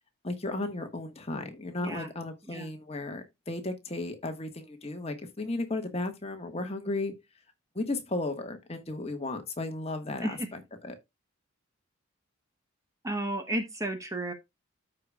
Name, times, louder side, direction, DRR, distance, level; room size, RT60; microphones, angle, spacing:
voice 1, 0.2-7.2 7.7-11.0, left 2 dB, 30° left, 1.4 m, -35 dB
voice 2, 13.0-14.3, right 1 dB, 15° right, 1.0 m, -33 dB
13.5 x 4.9 x 2.3 m
head